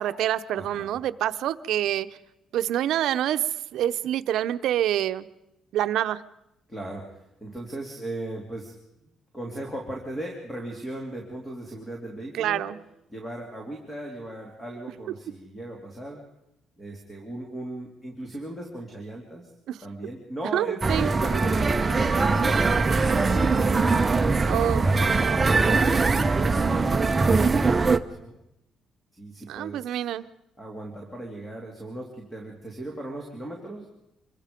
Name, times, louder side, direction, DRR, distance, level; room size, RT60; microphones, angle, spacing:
voice 1, 0.0-2.1 2.5-3.4 3.7-5.3 5.7-6.2 12.3-12.8 19.7-19.8 20.5-21.1 24.5-24.8 29.5-30.2, right 11 dB, 70° right, 11 dB, 0.7 m, -26 dB
voice 2, 0.5-0.9 6.7-8.7 9.0-12.6 13.1-16.2 16.8-19.5 19.8-23.1 23.8-27.9 28.2-28.4 29.1-30.0 30.6-33.9, right 1 dB, 10° left, 1 dB, 2.6 m, -37 dB
sound 1, 20.8-28.0, right 3 dB, 20° right, 0.7 m, -22 dB
26.0 x 23.0 x 5.2 m, 0.85 s
cardioid pair, 155°, 0 cm